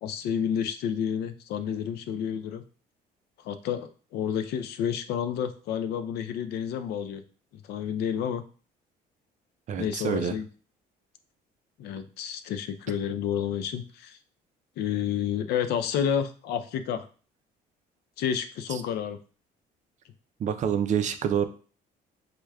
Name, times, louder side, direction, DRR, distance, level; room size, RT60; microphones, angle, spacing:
voice 1, 0.0-2.6 3.4-7.2 7.7-8.4 9.8-10.5 11.8-14.2 14.8-17.1 18.2-19.2, left 8 dB, 75° left, 9 dB, 0.4 m, -30 dB
voice 2, 9.7-10.4 20.4-21.5, right 8 dB, 45° right, 9 dB, 0.4 m, -27 dB
4.7 x 2.1 x 2.2 m, 0.38 s
cardioid pair, 110°, 17 cm